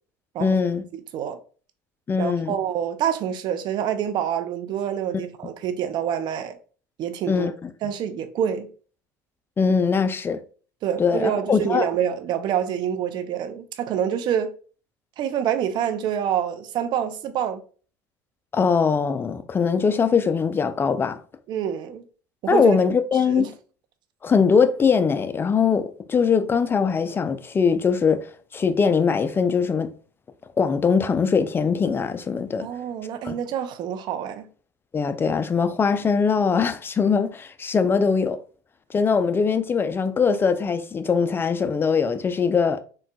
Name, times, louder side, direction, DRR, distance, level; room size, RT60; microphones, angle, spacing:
voice 1, 0.4-0.8 2.1-2.6 7.3-7.7 9.6-10.4 11.0-11.9 18.5-21.2 22.5-23.5 24.2-28.3 28.5-29.9 30.6-32.7 33.2-33.4 34.9-38.4 38.9-42.8, left 5 dB, 25° left, 0.4 m, -21 dB
voice 2, 0.9-1.4 2.2-6.6 7.0-7.5 7.8-8.7 10.8-14.5 15.2-17.6 21.5-22.0 22.4-22.8 23.4-23.5 32.6-34.5, right 9 dB, 55° right, 0.5 m, -26 dB
3.8 x 2.3 x 2.3 m
hypercardioid pair, 75°, 9 cm